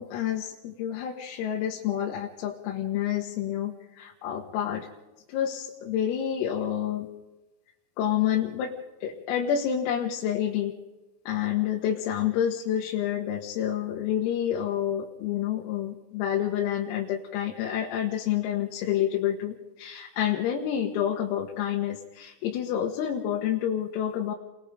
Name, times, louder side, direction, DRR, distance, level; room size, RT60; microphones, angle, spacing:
voice 1, 0.0-4.9 5.3-7.1 8.0-8.7 9.0-10.7 11.3-24.3, left 10 dB, 90° left, 0 dB, 4.3 m, -28 dB
30.0 x 22.0 x 5.1 m, 1.1 s
omnidirectional pair, 5.9 m